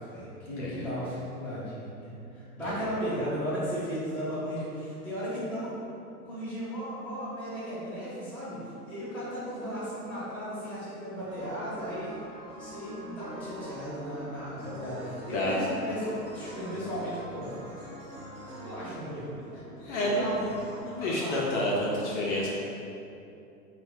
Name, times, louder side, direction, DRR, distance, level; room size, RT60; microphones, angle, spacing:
voice 1, 0.0-5.7 6.2-12.2 12.5-17.5 18.6-19.3 19.9-20.4 21.0-21.4, equal, 5° left, -13 dB, 0.8 m, -35 dB
voice 2, 0.6-0.9 2.6-2.8 15.3-15.6 19.8-20.3 20.8-22.5, left 1 dB, 50° left, -5 dB, 0.6 m, -29 dB
sound 1, 11.2-20.8, right 1 dB, 15° right, 0.6 m, -44 dB
3.2 x 2.4 x 3.4 m, 2.7 s
hypercardioid pair, 135°, 46 cm